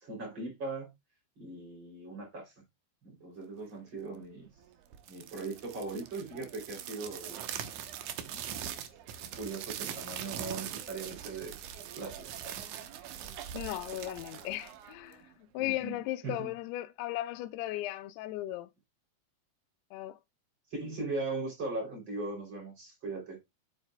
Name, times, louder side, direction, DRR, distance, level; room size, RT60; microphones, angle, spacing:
voice 1, 0.0-0.9 1.4-2.5 3.0-4.5 5.1-7.4 8.2-8.6 9.4-11.5 11.9-12.8 15.6-15.9 16.2-16.5 20.7-23.4, right 3 dB, 30° right, 3.3 m, -39 dB
sound 1, 4.9-15.3, right 10 dB, 70° right, 1.9 m, -42 dB
voice 2, 13.5-15.2 15.5-18.7 19.9-20.2, left 15 dB, 85° left, 2.6 m, -36 dB
8.1 x 8.0 x 2.2 m
omnidirectional pair, 4.7 m